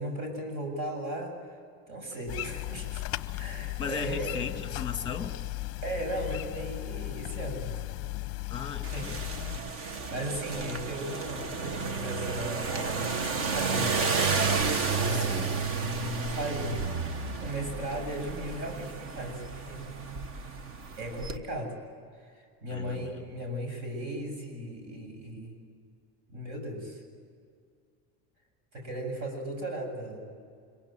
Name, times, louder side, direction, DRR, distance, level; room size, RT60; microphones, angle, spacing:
voice 1, 0.0-1.4 1.9-3.0 3.3-4.4 5.8-7.8 8.9-9.1 9.8-14.5 14.9-19.8 21.0-21.8 22.4-25.6 26.3-27.0 28.7-30.2, right 1 dB, 50° right, 3 dB, 7.7 m, -36 dB
sound 1, 2.3-9.6, left 19 dB, 40° left, 0.8 m, -36 dB
voice 2, 3.8-5.4 8.5-9.2 15.1-15.6 22.7-23.2, left 6 dB, 15° left, 5 dB, 2.2 m, -37 dB
sound 2, 8.8-21.4, right 4 dB, 35° right, 1.2 m, -32 dB
26.0 x 23.5 x 9.1 m, 2.2 s
cardioid pair, 175°, 37 cm